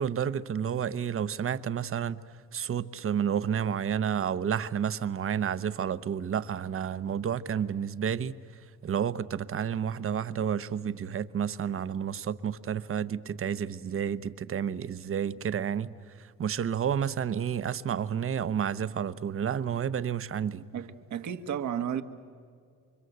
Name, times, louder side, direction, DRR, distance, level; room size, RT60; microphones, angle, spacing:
voice 1, 0.0-2.2 2.5-8.4 8.8-20.6, right 8 dB, 45° right, 0.9 m, -30 dB
voice 2, 20.7-22.0, right 9 dB, 70° right, 1.4 m, -33 dB
28.5 x 24.5 x 8.0 m
cardioid pair, 90°, 30 cm